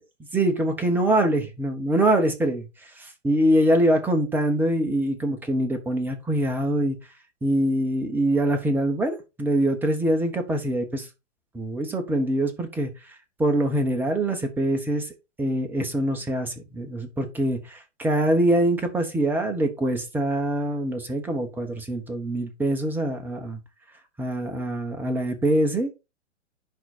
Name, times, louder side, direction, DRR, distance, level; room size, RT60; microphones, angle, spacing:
voice 1, 0.3-2.7 3.0-7.0 7.4-11.1 11.5-12.9 13.4-15.1 15.4-23.6 24.2-25.9, right 1 dB, 5° right, 1.2 m, -24 dB
10.5 x 4.1 x 4.4 m
figure-of-eight pair, 120°, 36 cm